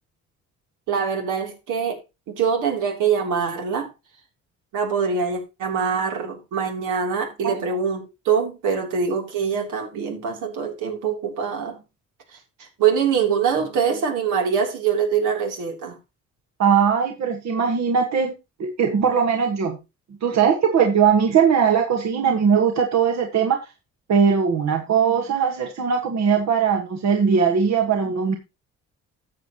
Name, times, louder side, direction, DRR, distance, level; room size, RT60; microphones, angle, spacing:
voice 1, 0.9-2.0 2.3-3.9 4.7-11.8 12.6-15.9, right 6 dB, 85° right, 3.2 m, -24 dB
voice 2, 16.6-18.3 18.6-19.8 20.2-23.6 24.1-28.4, right 6 dB, 65° right, 1.6 m, -20 dB
13.5 x 8.0 x 3.0 m
cardioid pair, 90°, 30 cm